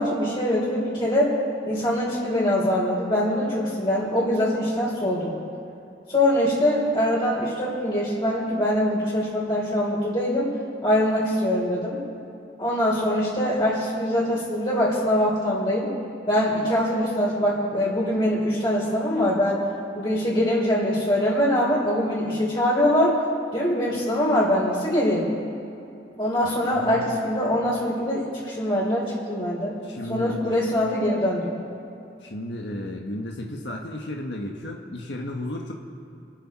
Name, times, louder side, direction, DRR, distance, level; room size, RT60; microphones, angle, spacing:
voice 1, 0.0-1.4 1.6-5.3 6.1-10.5 10.8-12.0 12.6-15.9 16.3-19.6 19.9-23.2 23.5-25.3 26.2-29.7 30.1-31.5, left 1 dB, 30° left, -7 dB, 3.7 m, -23 dB
voice 2, 26.4-27.0 29.8-30.6 32.2-35.7, left 1 dB, 80° left, 0 dB, 1.5 m, -34 dB
28.5 x 11.0 x 4.4 m, 2.7 s
head